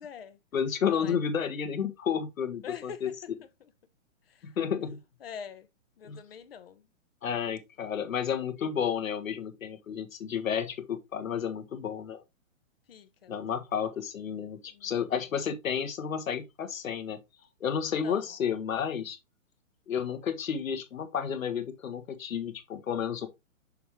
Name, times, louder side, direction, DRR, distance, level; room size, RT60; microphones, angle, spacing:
voice 1, 0.0-0.4 0.9-1.2 2.6-3.1 4.3-4.5 5.2-5.7 6.0-6.9 12.9-13.3 14.7-14.9 18.0-18.2, left 7 dB, 45° left, 1.0 m, -44 dB
voice 2, 0.5-3.1 4.4-5.0 6.0-6.2 7.2-12.2 13.3-17.2 17.6-19.2 19.9-23.3, left 7 dB, 90° left, 1.7 m, -31 dB
6.7 x 5.4 x 3.2 m
hypercardioid pair, 175°, 39 cm